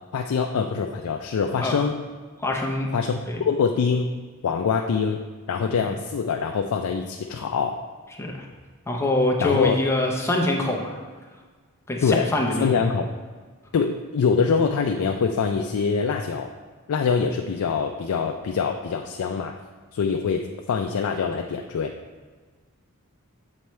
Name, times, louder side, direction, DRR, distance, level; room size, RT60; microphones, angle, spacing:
voice 1, 0.1-2.0 2.9-4.1 4.4-5.2 5.5-7.8 9.4-9.8 12.0-13.0 13.7-16.5 16.9-19.6 19.9-21.9, left 5 dB, 75° left, 3 dB, 0.4 m, -24 dB
voice 2, 2.4-2.9 3.3-3.4 8.2-8.4 8.9-11.0 11.9-12.7, left 2 dB, 10° left, 0 dB, 0.7 m, -24 dB
7.1 x 4.5 x 3.1 m, 1.4 s
head